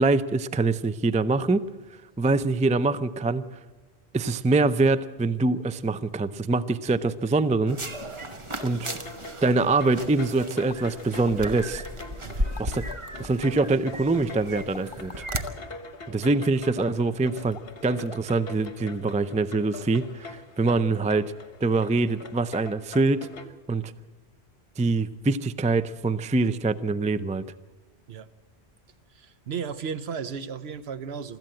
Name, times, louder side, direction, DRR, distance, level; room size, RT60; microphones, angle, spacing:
voice 1, 0.0-1.7 2.2-3.5 4.1-7.8 8.6-8.9 9.4-11.8 12.6-12.8 13.2-15.1 16.1-17.6 17.8-20.3 20.6-21.3 21.6-23.3 23.7-23.9 24.8-27.4, right 3 dB, 10° right, 14 dB, 0.3 m, -24 dB
sound 1, 7.7-15.4, right 1 dB, 30° right, 1.0 m, -35 dB
sound 2, 8.3-23.4, left 3 dB, 60° left, 1.5 m, -43 dB
sound 3, 10.7-10.8 11.3-11.4 12.2-13.3 14.6-15.6 16.7-17.1 17.5-17.8 18.1-18.4 18.6-18.7, left 5 dB, 30° left, 0.7 m, -43 dB
voice 2, 29.1-31.4, right 6 dB, 70° right, 13 dB, 1.0 m, -34 dB
25.0 x 14.0 x 7.7 m, 1.3 s
omnidirectional pair, 1.1 m